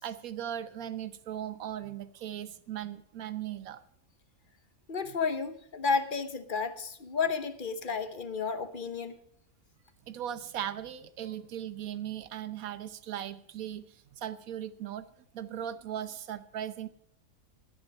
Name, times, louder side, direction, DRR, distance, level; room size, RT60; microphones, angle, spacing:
voice 1, 0.0-3.8 5.1-5.2 10.1-15.1 15.3-16.9, right 10 dB, 80° right, 14 dB, 1.2 m, -38 dB
voice 2, 4.9-9.2, left 5 dB, 40° left, 11 dB, 1.0 m, -32 dB
11.5 x 10.5 x 5.4 m, 0.70 s
omnidirectional pair, 1.5 m